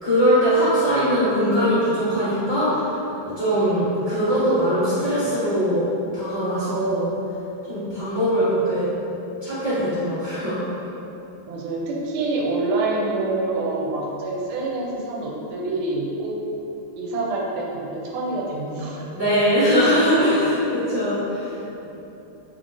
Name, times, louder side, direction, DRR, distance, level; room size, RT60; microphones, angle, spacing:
voice 1, 0.0-2.9 3.2-5.8 6.1-7.1 7.7-8.9 9.4-10.6 19.1-21.5, equal, 25° left, -16 dB, 1.2 m, -21 dB
voice 2, 11.5-16.4 17.0-19.1 21.8-21.9, right 2 dB, 90° right, -3 dB, 1.5 m, -26 dB
3.7 x 3.5 x 2.4 m, 3.0 s
omnidirectional pair, 2.3 m